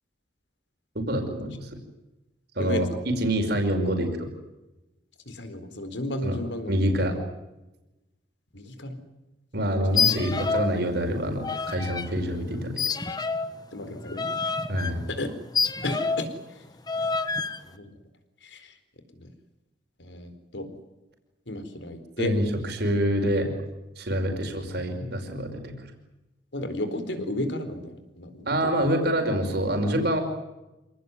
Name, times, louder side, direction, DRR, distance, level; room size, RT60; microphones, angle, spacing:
voice 1, 1.0-1.8 2.6-4.3 6.2-6.4 6.7-7.1 9.5-12.8 14.7-15.0 22.2-23.5 24.0-25.7 28.5-30.2, equal, 60° right, 4 dB, 5.5 m, -26 dB
voice 2, 5.3-6.7 7.0-7.2 8.5-9.0 13.7-14.3 15.1-15.3 15.8-16.3 17.7-17.9 18.4-18.7 19.2-19.3 20.0-20.7 21.5-22.3 26.5-28.9, left 1 dB, 80° left, 10 dB, 4.2 m, -33 dB
sound 1, 9.9-10.8 11.0-12.1 12.8-16.3 16.9-17.6, left 5 dB, 20° left, 1.4 m, -28 dB
27.5 x 19.0 x 9.7 m, 1.0 s
head